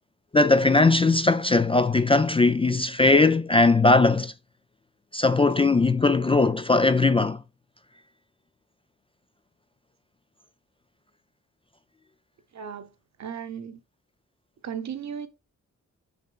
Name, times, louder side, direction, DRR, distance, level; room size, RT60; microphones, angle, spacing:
voice 1, 0.3-4.3 5.1-7.4, left 3 dB, 20° left, 0.3 m, -19 dB
voice 2, 12.5-12.9 13.2-13.8 14.6-15.3, right 8 dB, 60° right, 1.1 m, -35 dB
6.7 x 6.6 x 2.4 m
wide cardioid pair, 150°, 31 cm